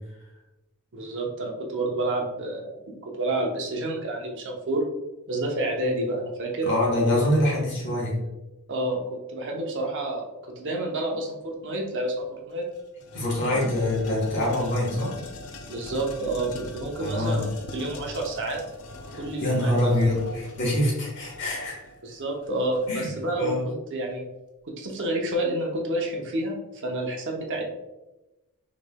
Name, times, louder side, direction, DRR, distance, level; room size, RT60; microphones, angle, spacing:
voice 1, 0.9-4.9 5.3-6.7 8.7-12.6 13.6-13.7 15.7-17.4 17.7-18.6 19.1-20.0 22.0-24.3 24.7-27.6, right 1 dB, 60° right, 0 dB, 0.7 m, -29 dB
voice 2, 6.6-8.1 13.1-15.1 17.0-17.5 19.4-21.8 22.9-23.1 23.4-23.6, left 1 dB, 55° left, -4 dB, 1.3 m, -25 dB
sound 1, 12.1-12.2 12.5-23.2, left 1 dB, 80° left, 0.6 m, -42 dB
6.2 x 3.1 x 2.2 m, 1.0 s
head